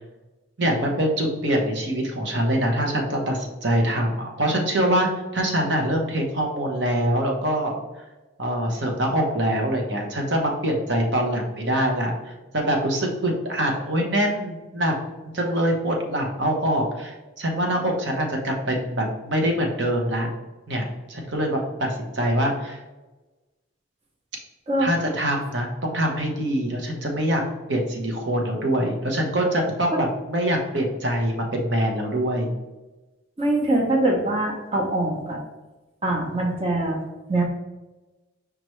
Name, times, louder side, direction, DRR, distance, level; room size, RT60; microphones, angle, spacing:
voice 1, 0.6-7.8 8.4-14.9 15.3-20.3 20.7-22.8 24.8-27.4 27.7-32.5 36.0-36.2, right 1 dB, 65° right, 1 dB, 1.0 m, -24 dB
voice 2, 33.4-35.4 36.0-37.0 37.3-37.4, right 1 dB, 30° right, 0 dB, 0.9 m, -23 dB
5.1 x 3.2 x 3.1 m, 1.1 s
head